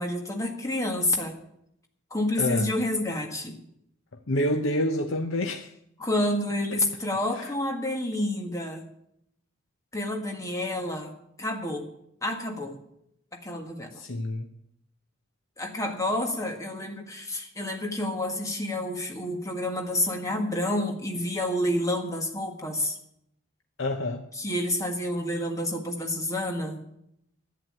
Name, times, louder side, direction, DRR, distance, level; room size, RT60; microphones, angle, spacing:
voice 1, 0.0-1.3 2.1-3.6 6.0-8.8 9.9-11.9 12.2-12.8 13.3-14.0 15.6-23.0 24.3-26.8, left 1 dB, 15° left, 3 dB, 1.7 m, -29 dB
voice 2, 2.4-2.7 4.3-5.7 7.4-7.5 14.0-14.5 23.8-24.2, left 1 dB, 75° left, 5 dB, 0.9 m, -27 dB
11.0 x 9.3 x 8.8 m, 0.76 s
head